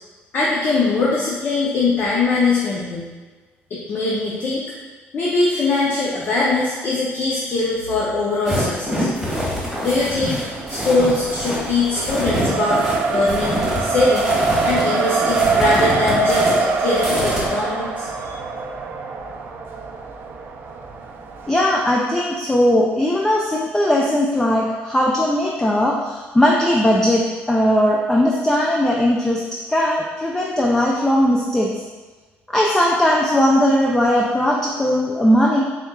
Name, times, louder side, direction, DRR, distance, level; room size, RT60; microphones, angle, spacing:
voice 1, 0.3-3.1 3.7-4.7 5.1-9.1 9.8-10.4 10.7-12.8 13.1-14.3 14.6-16.5 16.8-18.3, left 3 dB, 50° left, -5 dB, 0.6 m, -21 dB
sound 1, 8.4-17.5, equal, 5° right, 1.3 m, -25 dB
Race car auto racing, 10.5-21.5, right 3 dB, 55° right, 0.4 m, -23 dB
voice 2, 21.5-29.4 29.7-31.8 32.5-35.6, left 1 dB, 10° left, -2 dB, 0.4 m, -18 dB
4.3 x 3.5 x 2.3 m, 1.3 s
cardioid pair, 105°, 5 cm